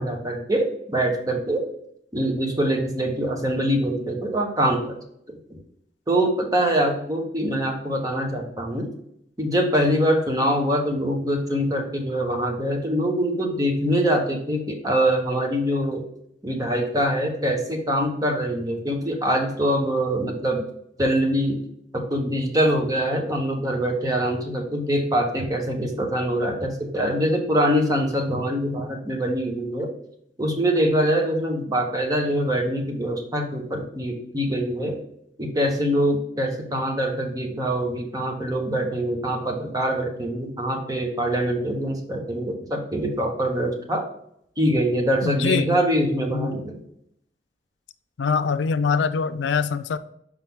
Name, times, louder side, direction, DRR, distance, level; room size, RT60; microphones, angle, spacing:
voice 1, 0.0-1.7 2.1-4.9 5.5-5.6 6.1-8.9 9.4-16.0 16.4-20.6 21.0-21.6 21.9-29.9 30.4-35.0 35.4-44.0 44.6-46.8, equal, 20° right, 2 dB, 1.0 m, -24 dB
voice 2, 45.2-45.8 46.3-46.5 48.2-50.0, left 5 dB, 90° left, 12 dB, 0.4 m, -23 dB
5.8 x 4.8 x 3.6 m, 0.71 s
head